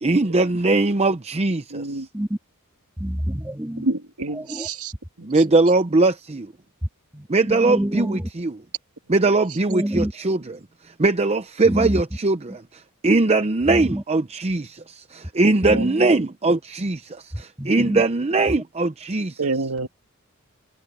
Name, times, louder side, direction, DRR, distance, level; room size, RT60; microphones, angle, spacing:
voice 1, 0.0-2.0 5.2-6.5 7.3-8.5 9.1-10.4 11.0-19.4, right 3 dB, 30° right, 0.7 m, -21 dB
voice 2, 1.7-2.1 3.8-4.9 5.2-5.4 15.7-15.9 19.4-19.9, right 3 dB, 85° right, 2.0 m, -28 dB
voice 3, 3.0-3.9 4.3-4.7 6.8-8.3 9.7-10.1 11.6-12.0 13.7-14.0 15.6-16.3 17.6-18.0 18.5-18.6, equal, 10° right, 1.8 m, -27 dB
head